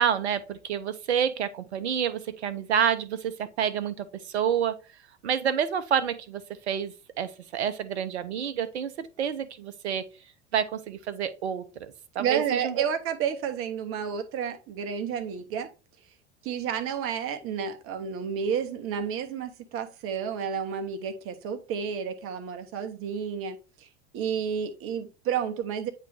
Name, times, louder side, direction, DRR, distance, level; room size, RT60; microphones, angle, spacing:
voice 1, 0.0-4.8 5.2-10.0 10.5-12.8, right 8 dB, 70° right, 0.8 m, -28 dB
voice 2, 12.2-15.7 16.4-23.9 24.1-25.9, right 7 dB, 40° right, 0.9 m, -31 dB
9.2 x 3.1 x 3.3 m
figure-of-eight pair, 80°, 34 cm